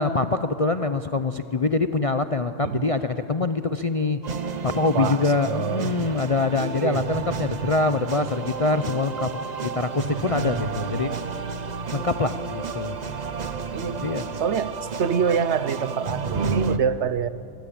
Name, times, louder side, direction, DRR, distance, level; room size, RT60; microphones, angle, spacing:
voice 1, 0.0-4.2 4.6-9.3 9.6-11.1 11.9-13.0 14.0-14.2, left 3 dB, 40° left, 9 dB, 0.5 m, -24 dB
voice 2, 2.6-3.0 4.9-6.0 6.5-7.1 13.7-14.0 14.4-17.3, right 7 dB, 65° right, 14 dB, 1.0 m, -26 dB
sound 1, 4.2-16.8, right 5 dB, 40° right, 0.9 m, -31 dB
23.5 x 21.0 x 8.7 m, 2.8 s
omnidirectional pair, 1.3 m